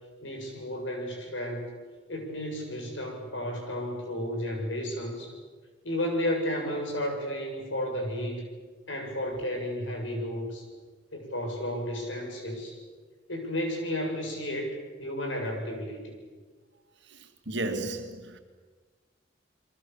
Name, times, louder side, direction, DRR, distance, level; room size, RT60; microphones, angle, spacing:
voice 1, 0.2-1.7 2.1-5.3 5.8-8.5 8.9-10.6 11.1-12.8 13.3-16.1, equal, 90° left, 7.2 m, -32 dB
voice 2, 17.5-18.4, right 2 dB, 65° right, 2.5 m, -32 dB
29.5 x 23.0 x 7.3 m
head